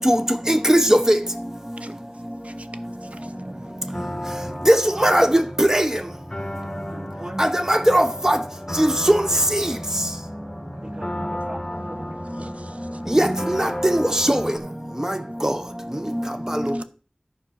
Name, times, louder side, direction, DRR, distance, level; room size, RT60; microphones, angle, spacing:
voice 1, 0.5-1.2 4.7-5.9 7.4-8.4 8.8-9.2 9.6-9.7 13.1-14.4 15.4-15.5 16.5-16.7, equal, 20° right, 0.7 m, -18 dB
voice 2, 3.0-3.3 12.2-13.0 16.6-16.8, right 2 dB, 60° right, 0.8 m, -45 dB
sound 1, 3.9-14.6, left 1 dB, 25° left, 1.6 m, -34 dB
voice 3, 6.9-7.5 7.8-7.9 9.9-10.0 10.8-12.7 13.0-13.5, right 1 dB, 40° right, 1.1 m, -37 dB
11.0 x 4.6 x 6.3 m
wide cardioid pair, 40°, 3 cm